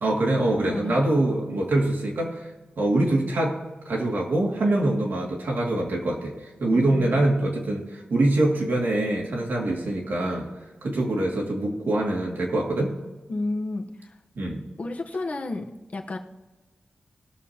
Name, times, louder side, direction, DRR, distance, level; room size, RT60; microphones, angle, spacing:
voice 1, 0.0-2.5 2.8-3.6 3.9-6.3 6.6-10.5 10.8-12.9 14.4-14.6, right 1 dB, 75° right, -1 dB, 2.3 m, -24 dB
voice 2, 0.6-1.0 6.7-7.3 13.3-14.2 14.8-15.7 15.9-16.2, left 2 dB, 45° left, 2 dB, 1.0 m, -31 dB
20.0 x 7.0 x 2.9 m, 1.2 s
wide cardioid pair, 165°, 4 cm